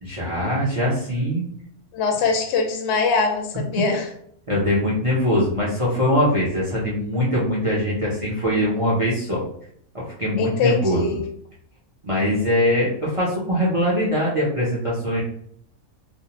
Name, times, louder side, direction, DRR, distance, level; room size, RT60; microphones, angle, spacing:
voice 1, 0.0-1.4 4.5-9.5 9.9-11.2 12.0-15.2, equal, 60° right, -6 dB, 0.3 m, -22 dB
voice 2, 1.9-4.1 10.4-11.2, left 4 dB, 65° left, 3 dB, 0.7 m, -22 dB
2.5 x 2.0 x 2.8 m, 0.66 s
omnidirectional pair, 1.6 m